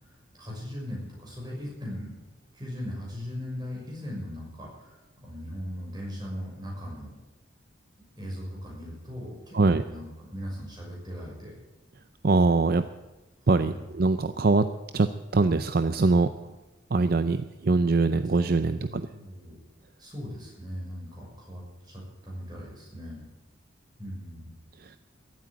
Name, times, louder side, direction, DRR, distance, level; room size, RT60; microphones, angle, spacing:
voice 1, 0.0-2.1 2.5-7.1 8.2-11.6 13.6-13.9 18.7-19.6 20.0-23.3 24.0-24.5, equal, 20° right, -3 dB, 6.3 m, -39 dB
voice 2, 12.2-12.8 13.5-14.7 14.9-15.1 15.3-16.3 16.9-19.0 24.8-25.0, right 3 dB, 50° right, 11 dB, 0.5 m, -23 dB
14.5 x 8.8 x 9.3 m, 1.1 s
head